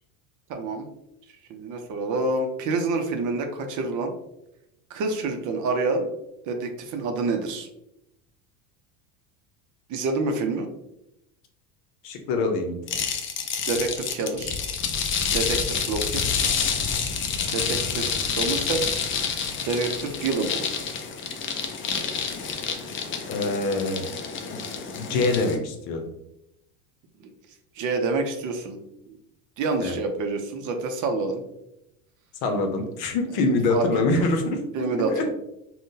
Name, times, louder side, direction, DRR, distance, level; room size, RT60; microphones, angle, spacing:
voice 1, 0.5-0.9 1.5-4.1 4.9-6.1 6.5-7.7 9.9-10.7 13.7-14.6 15.3-16.2 17.5-19.0 19.6-20.7 27.2-27.3 27.8-28.8 29.1-29.2 29.6-31.4 33.7-34.3 34.7-35.3, right 3 dB, 45° right, 4 dB, 0.6 m, -27 dB
voice 2, 12.0-13.0 23.3-24.0 24.5-24.6 24.9-26.1 29.8-30.0 32.4-35.3, left 2 dB, 60° left, 4 dB, 0.8 m, -25 dB
sound 1, 12.9-25.6, left 6 dB, 30° left, 0.4 m, -28 dB
3.6 x 2.3 x 2.7 m, 0.83 s
supercardioid pair, 100°, 44 cm